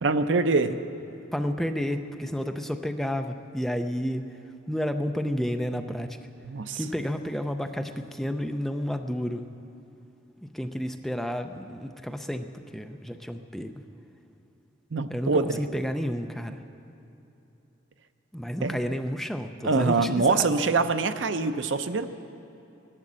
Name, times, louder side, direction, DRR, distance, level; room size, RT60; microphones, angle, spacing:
voice 1, 0.0-0.7 6.5-6.8 14.9-15.6 18.6-18.8 19.6-22.1, right 3 dB, 75° right, 10 dB, 0.6 m, -24 dB
voice 2, 1.3-4.2 4.7-6.2 6.7-9.5 10.4-13.8 15.1-16.6 18.3-20.5, equal, ahead, 6 dB, 0.5 m, -31 dB
16.0 x 12.0 x 7.5 m, 2.9 s
head